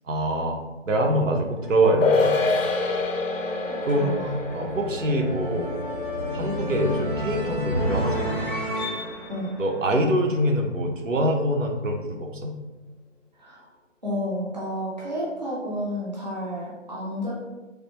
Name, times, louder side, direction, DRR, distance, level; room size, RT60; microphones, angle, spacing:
voice 1, 0.1-0.6 0.9-2.3 3.8-4.2 4.5-5.7 6.3-8.6 9.6-12.5, right 1 dB, 80° right, 2 dB, 0.7 m, -24 dB
sound 1, 1.6-10.6, equal, 40° left, 0.5 m, -32 dB
sound 2, 2.0-8.7 9.0-9.1, left 3 dB, 90° left, 0.5 m, -28 dB
voice 2, 3.7-4.3 9.3-9.5 13.4-13.7 14.0-17.3, equal, 35° right, -7 dB, 0.5 m, -31 dB
3.3 x 2.0 x 2.9 m, 1.1 s
figure-of-eight pair, 175°, 38 cm